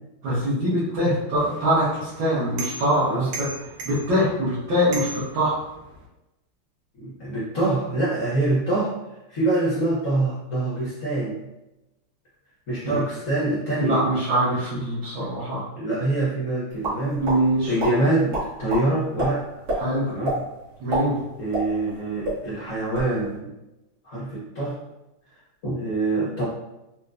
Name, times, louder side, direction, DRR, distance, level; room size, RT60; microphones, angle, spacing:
voice 1, 0.2-3.5 3.8-5.1 5.3-5.5 12.8-12.9 13.8-15.6 17.0-17.7 19.8-20.1 20.8-21.2, equal, 60° right, -11 dB, 1.6 m, -23 dB
sound 1, 1.4-6.1, right 3 dB, 90° right, 1.6 m, -38 dB
voice 2, 7.0-8.9 9.3-11.4 12.7-14.0 14.7-14.8 15.7-17.2 17.7-19.5 20.1-20.5 21.4-23.5 24.0-24.8 25.6-26.4, right 2 dB, 75° left, -7 dB, 0.7 m, -25 dB
sound 2, 16.8-17.4 17.8-17.9 18.3-18.8 19.2-19.3 19.7-19.8 20.2-20.4 20.8-22.0 22.2-22.4 22.8-23.1, right 1 dB, 45° right, 1.2 m, -26 dB
4.3 x 2.2 x 2.4 m, 0.96 s
omnidirectional pair, 2.4 m